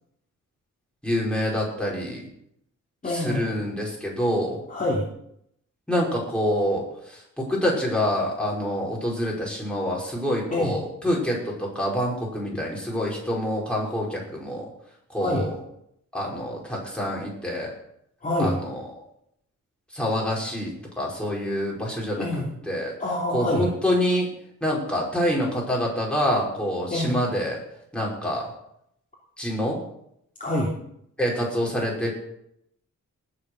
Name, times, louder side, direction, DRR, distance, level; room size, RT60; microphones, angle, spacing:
voice 1, 1.0-2.3 3.0-4.6 5.9-14.7 15.1-15.6 16.1-17.7 18.4-18.8 19.9-20.7 21.0-22.3 22.7-22.9 23.3-24.3 24.6-27.6 27.9-28.5 29.4-29.8 31.2-32.1, equal, 5° left, -3 dB, 5.6 m, -26 dB
voice 2, 3.0-3.5 4.7-5.0 10.5-10.7 15.2-15.4 18.2-18.6 22.2-22.5 23.0-23.7 26.9-27.2 30.4-30.7, left 1 dB, 25° left, -4 dB, 3.0 m, -26 dB
19.5 x 7.5 x 6.6 m, 0.74 s
wide cardioid pair, 140°, 31 cm